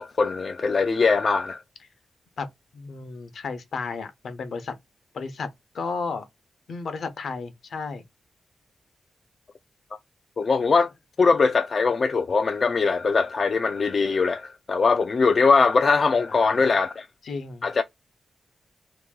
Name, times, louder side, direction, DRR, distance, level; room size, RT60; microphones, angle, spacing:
voice 1, 0.0-1.6 10.4-10.9 11.2-17.1 17.6-17.8, left 4 dB, 55° left, 0.4 m, -21 dB
voice 2, 2.7-4.7 5.1-5.5 5.7-6.3 6.7-8.0 16.3-16.7 17.3-17.7, left 4 dB, 75° left, 0.9 m, -33 dB
3.0 x 2.6 x 3.6 m
cardioid pair, 70°, 0 cm